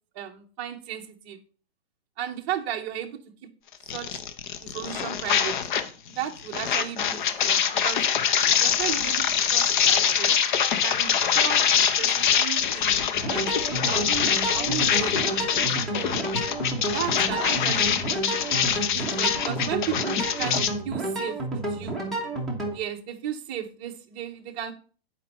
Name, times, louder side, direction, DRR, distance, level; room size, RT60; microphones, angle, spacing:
voice 1, 0.1-1.4 2.2-3.2 3.9-4.2 4.6-5.6 6.2-8.0 8.6-10.4 10.7-12.9 13.3-13.5 13.8-16.2 16.9-18.0 18.5-22.0 22.7-24.7, right 9 dB, 25° right, 2 dB, 0.8 m, -35 dB
sound 1, 3.9-5.9 6.2-20.7, left 8 dB, 50° left, 0.8 m, -24 dB
sound 2, 13.1-22.7, right 2 dB, ahead, 1.1 m, -31 dB
10.0 x 4.5 x 4.2 m, 0.40 s
hypercardioid pair, 155°, 31 cm